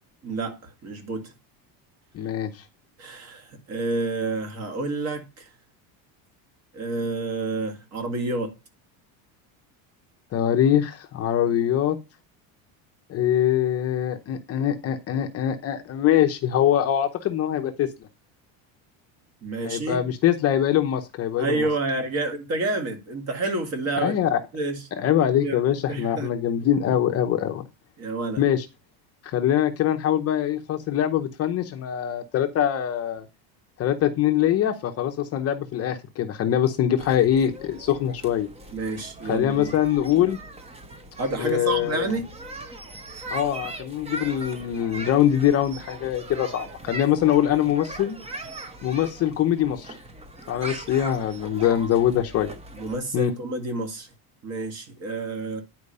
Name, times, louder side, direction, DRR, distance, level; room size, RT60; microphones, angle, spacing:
voice 1, 0.2-1.3 3.0-5.5 6.7-8.5 19.4-20.1 21.4-24.8 25.4-26.3 28.0-28.4 38.7-39.7 41.2-42.2 52.7-54.1 54.4-55.6, right 2 dB, 35° right, 2.0 m, -29 dB
voice 2, 2.1-2.6 10.3-12.0 13.1-17.9 19.6-21.7 24.0-24.4 25.0-27.6 28.4-28.6 29.2-33.2 33.8-38.5 39.3-40.4 41.4-42.2 43.3-48.2 48.8-50.0 50.5-52.5 53.1-53.3, left 10 dB, 35° left, 0.8 m, -23 dB
sound 1, 37.0-53.0, right 2 dB, 15° right, 0.9 m, -40 dB
9.9 x 4.5 x 5.4 m
cardioid pair, 160°, 44 cm